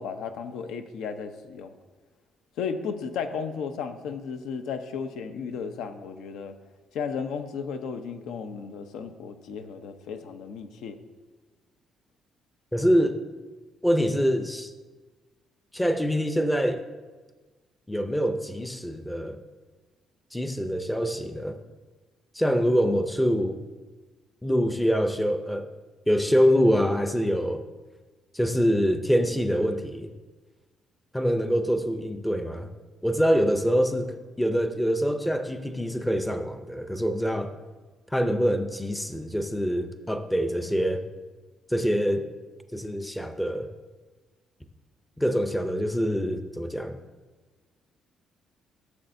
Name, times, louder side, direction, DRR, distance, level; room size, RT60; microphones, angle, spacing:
voice 1, 0.0-1.7 2.6-6.6 6.9-11.0, left 6 dB, 85° left, 8 dB, 0.7 m, -34 dB
voice 2, 12.7-13.2 13.8-14.7 15.7-16.8 17.9-19.4 20.3-21.6 22.3-23.6 24.4-25.7 26.1-27.6 28.3-30.1 31.1-32.7 33.0-37.5 38.1-41.1 41.7-42.3 42.7-43.7 45.2-47.0, equal, 5° left, 7 dB, 0.5 m, -25 dB
14.5 x 7.3 x 2.6 m, 1.3 s
cardioid pair, 160°, 0 cm